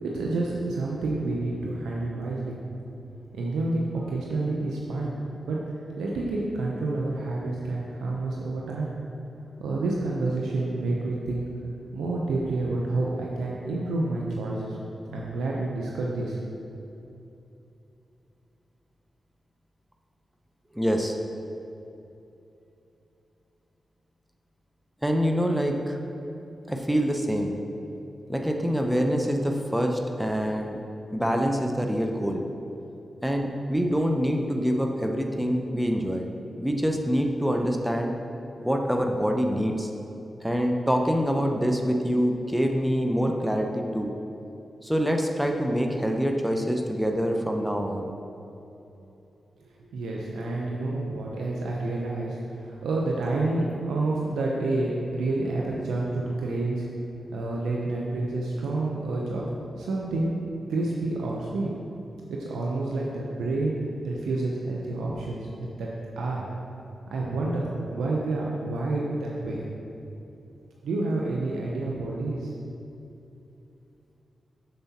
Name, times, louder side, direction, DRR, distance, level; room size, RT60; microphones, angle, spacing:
voice 1, 0.0-2.6 3.3-5.2 5.5-5.6 6.0-9.0 9.6-11.4 11.9-14.8 15.1-16.4 49.9-52.4 52.6-56.8 57.3-59.5 59.8-60.3 60.7-61.7 62.3-63.8 64.0-65.9 66.2-66.5 67.1-67.7 67.9-69.6 70.8-72.5, right 2 dB, 85° right, -3 dB, 0.6 m, -29 dB
voice 2, 20.7-21.2 25.0-26.0 26.7-27.6 28.3-30.8 31.1-32.4 33.2-36.3 36.6-38.1 38.6-39.9 40.4-44.1 44.8-48.1, equal, 5° right, 3 dB, 0.7 m, -25 dB
7.3 x 6.8 x 2.8 m, 2.8 s
supercardioid pair, 40°, 0 cm